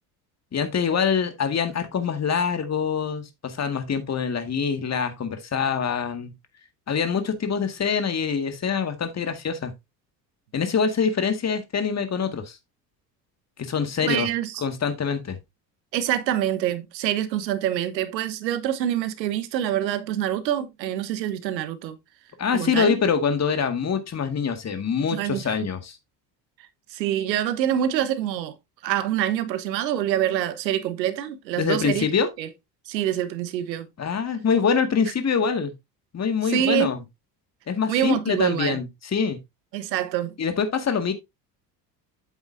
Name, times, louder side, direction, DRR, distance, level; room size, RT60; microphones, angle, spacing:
voice 1, 0.5-6.3 6.9-9.7 10.5-12.6 13.6-14.3 14.6-15.4 22.4-26.0 31.6-32.3 34.0-35.7 36.1-37.0 37.7-39.4 40.4-41.1, left 6 dB, 30° left, 2.0 m, -25 dB
voice 2, 14.0-14.6 15.9-22.0 22.5-23.0 25.1-25.6 26.9-28.5 28.8-32.1 32.4-32.5 32.9-33.9 36.4-36.9 37.9-38.8 39.7-40.3, right 11 dB, 85° right, 1.2 m, -26 dB
8.2 x 8.0 x 2.6 m
hypercardioid pair, 65°, 50 cm